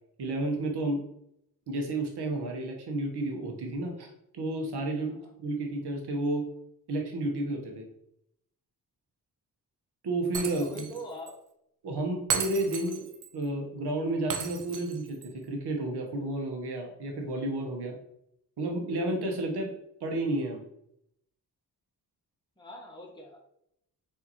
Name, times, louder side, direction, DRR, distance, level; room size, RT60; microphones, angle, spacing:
voice 1, 0.2-1.0 1.7-4.1 4.3-6.4 6.9-7.8 10.0-10.9 11.8-13.0 13.3-18.0 18.6-19.7 20.0-20.6, right 2 dB, 70° right, 2 dB, 1.0 m, -31 dB
Shatter, 10.3-11.0 11.3-11.4 12.3-13.3 14.3-15.3, right 6 dB, 50° right, 0.6 m, -34 dB
voice 2, 10.4-11.4 12.9-13.0 22.6-23.4, equal, 10° left, -1 dB, 1.0 m, -43 dB
3.6 x 2.8 x 2.9 m, 0.77 s
supercardioid pair, 45°, 42 cm